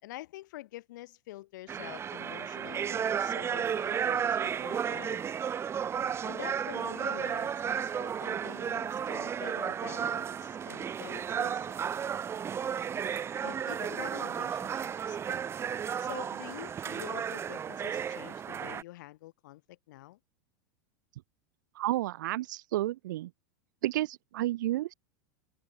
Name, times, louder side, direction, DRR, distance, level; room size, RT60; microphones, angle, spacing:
voice 1, 0.0-5.4 6.2-11.9 13.4-15.2 16.0-20.2, left 17 dB, 70° left, 5.5 m, -47 dB
sound 1, 1.7-18.8, right 8 dB, 25° right, 1.6 m, -33 dB
voice 2, 21.7-23.3 23.8-24.9, right 15 dB, 75° right, 3.3 m, -31 dB
open air
supercardioid pair, 120°, 10 cm